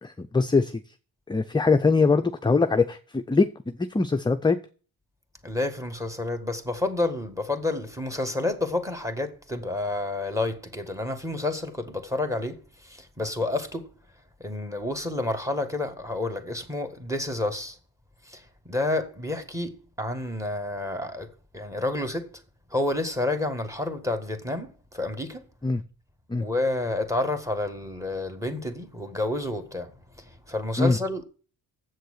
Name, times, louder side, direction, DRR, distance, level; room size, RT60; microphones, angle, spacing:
voice 1, 0.0-0.8 1.3-4.6 25.6-25.8 26.3-26.5 30.8-31.0, left 4 dB, 10° left, 0.5 m, -22 dB
voice 2, 5.4-12.6 12.9-13.9 14.4-17.8 18.3-18.4 18.6-19.7 20.0-21.3 21.5-22.3 22.7-25.4 26.4-29.9 30.5-31.2, left 2 dB, 10° right, 1.7 m, -29 dB
7.8 x 6.6 x 6.5 m
cardioid pair, 95°, 38 cm